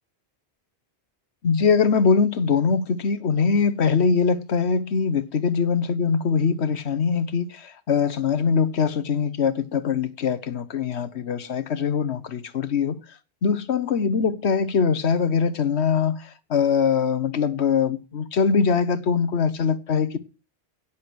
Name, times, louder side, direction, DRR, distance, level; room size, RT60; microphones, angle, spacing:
voice 1, 1.4-20.2, left 6 dB, 85° left, 1.3 m, -22 dB
17.0 x 7.4 x 6.2 m
omnidirectional pair, 1.1 m